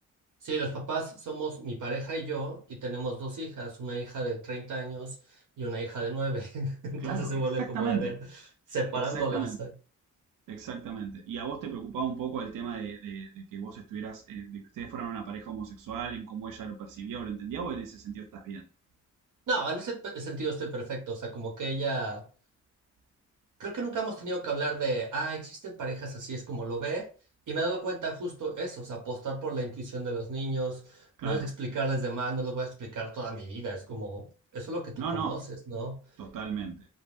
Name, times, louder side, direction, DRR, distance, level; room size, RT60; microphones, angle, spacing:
voice 1, 0.4-8.2 8.7-9.7 19.5-22.3 23.6-27.1 27.5-34.3 34.5-36.0, right 3 dB, 70° right, 0.9 m, -33 dB
voice 2, 7.0-8.1 9.1-9.6 10.5-18.6 31.2-31.5 35.0-35.4 36.2-36.9, right 7 dB, 90° right, 0.5 m, -36 dB
3.4 x 2.0 x 2.4 m
cardioid pair, 70°, 32 cm